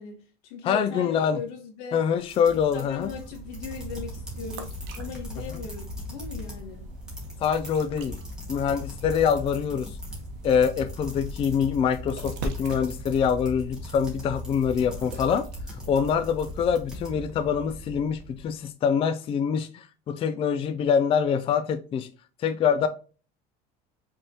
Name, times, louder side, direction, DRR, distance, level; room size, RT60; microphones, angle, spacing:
voice 1, 0.0-2.0 2.7-6.9, left 5 dB, 85° left, 1.7 m, -39 dB
voice 2, 0.6-1.4 1.9-3.1 7.4-8.2 8.5-9.9 10.4-15.5 15.9-22.1 22.4-22.9, left 7 dB, 30° left, 0.4 m, -25 dB
sound 1, 2.2-6.7 6.9-17.1, left 2 dB, 5° right, 1.7 m, -40 dB
sound 2, 2.7-18.6, right 2 dB, 65° right, 1.1 m, -40 dB
5.2 x 3.5 x 2.9 m
cardioid pair, 150°, 19 cm